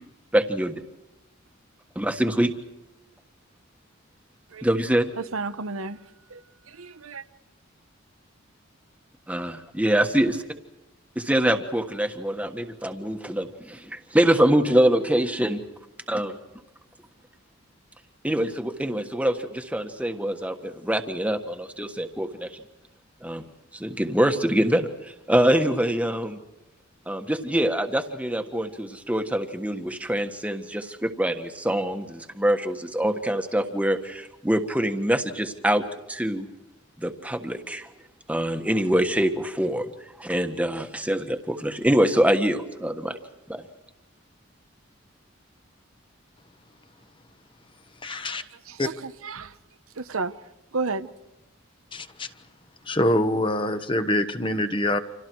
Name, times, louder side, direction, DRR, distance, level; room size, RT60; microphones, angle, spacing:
voice 1, 0.3-0.7 1.9-2.5 4.6-5.1 9.3-10.4 11.1-15.6 16.1-16.4 18.2-22.6 23.2-23.4 23.7-26.4 27.1-35.8 36.1-36.5 37.0-37.9 38.3-39.9 40.2-43.2 43.5-43.7, right 1 dB, 5° right, 1.5 m, -24 dB
voice 2, 5.2-6.0 6.3-6.4 6.7-7.2 48.7-49.6 50.0-50.3 50.7-51.1, right 3 dB, 90° right, 1.0 m, -32 dB
voice 3, 48.0-48.4 48.8-48.9 51.9-52.3 52.8-55.0, left 1 dB, 25° left, 1.1 m, -25 dB
30.0 x 27.0 x 4.7 m
head